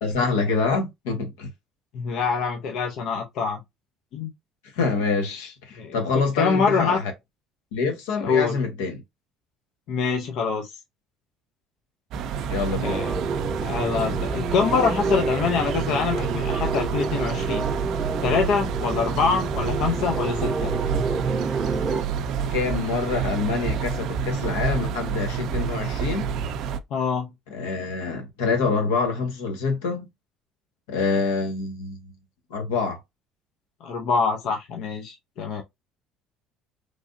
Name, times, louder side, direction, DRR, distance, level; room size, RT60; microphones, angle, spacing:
voice 1, 0.0-1.5 4.7-7.1 7.7-9.0 12.5-13.0 22.5-26.3 27.5-30.1 30.9-32.0 32.5-33.0, left 4 dB, 90° left, 1.1 m, -26 dB
voice 2, 1.9-3.6 4.1-4.3 5.7-6.0 6.4-7.0 8.2-8.6 9.9-10.7 12.8-13.1 13.6-17.7 18.2-20.7 26.9-27.3 33.8-35.6, left 5 dB, 65° left, 0.6 m, -25 dB
sound 1, 12.1-26.8, right 7 dB, 65° right, 0.4 m, -29 dB
sound 2, 12.8-22.0, right 4 dB, 30° right, 0.6 m, -29 dB
3.3 x 2.6 x 2.5 m
supercardioid pair, 85°, 0 cm